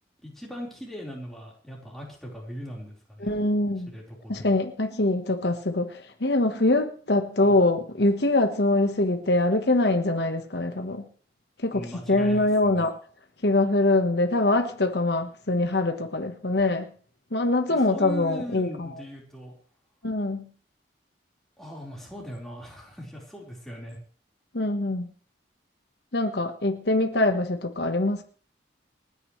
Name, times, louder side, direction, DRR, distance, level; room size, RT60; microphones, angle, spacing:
voice 1, 0.2-3.3 3.9-4.6 7.4-7.5 11.7-12.9 17.7-19.5 21.6-24.0, equal, ahead, -3 dB, 4.2 m, -39 dB
voice 2, 3.2-3.9 4.3-11.0 11.6-11.8 12.1-12.9 13.4-16.8 17.3-18.9 20.0-20.5 24.5-25.1 26.1-28.2, left 2 dB, 65° left, 6 dB, 1.2 m, -23 dB
29.5 x 9.8 x 3.2 m, 0.43 s
head